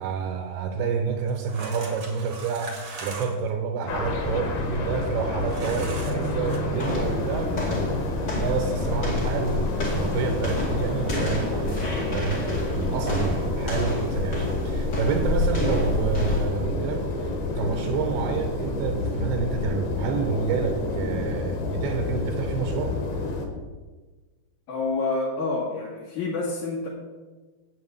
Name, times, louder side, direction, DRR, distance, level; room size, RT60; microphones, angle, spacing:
voice 1, 0.0-8.0 8.4-23.0, right 5 dB, 75° right, 5 dB, 2.7 m, -29 dB
sound 1, 1.3-3.5 5.5-6.6, right 3 dB, 45° right, 1.6 m, -39 dB
sound 2, 3.9-23.5, left 2 dB, 70° left, 3.3 m, -29 dB
sound 3, 6.7-16.6, left 1 dB, 30° left, 2.3 m, -30 dB
voice 2, 24.7-26.9, left 3 dB, 55° left, -4 dB, 2.7 m, -28 dB
8.4 x 7.3 x 8.0 m, 1.3 s
omnidirectional pair, 4.8 m